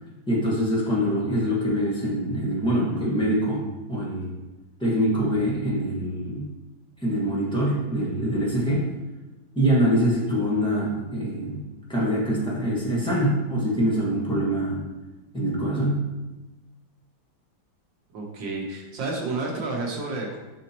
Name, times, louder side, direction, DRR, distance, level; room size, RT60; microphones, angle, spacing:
voice 1, 0.3-4.3 4.8-6.4 7.0-8.8 9.5-11.6 11.9-14.8 15.3-16.0, equal, 5° left, -6 dB, 1.3 m, -24 dB
voice 2, 18.1-20.4, right 3 dB, 80° right, -1 dB, 1.9 m, -30 dB
7.6 x 5.1 x 2.9 m, 1.1 s
omnidirectional pair, 2.0 m